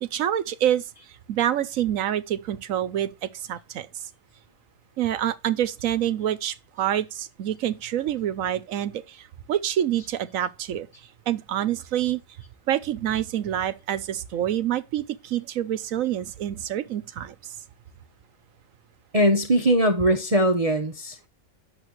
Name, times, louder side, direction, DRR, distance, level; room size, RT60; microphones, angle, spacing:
voice 1, 0.0-0.8 1.3-3.9 5.0-10.9 11.3-12.2 12.7-17.3, right 11 dB, 80° right, 1.1 m, -27 dB
voice 2, 19.1-21.3, right 1 dB, 30° right, 0.9 m, -21 dB
10.5 x 7.2 x 3.1 m
omnidirectional pair, 1.4 m